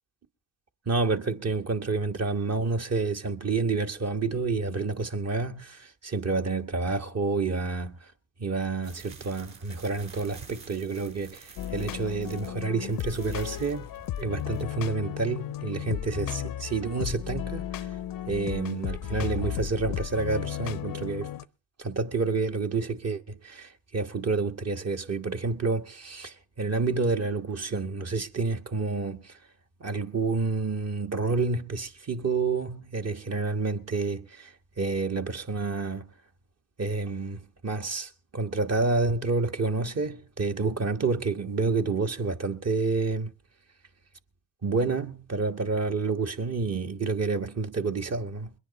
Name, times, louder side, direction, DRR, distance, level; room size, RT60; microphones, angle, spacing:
voice 1, 0.9-8.0 8.4-13.9 14.2-17.9 18.3-21.3 21.8-29.4 29.8-36.1 36.8-43.3 44.6-48.5, right 4 dB, 35° right, 1.5 m, -29 dB
sound 1, 8.8-14.6, right 5 dB, 60° right, 5.4 m, -49 dB
sound 2, 11.6-21.4, left 11 dB, 55° left, 0.7 m, -34 dB
22.0 x 10.0 x 4.1 m
supercardioid pair, 65°, 42 cm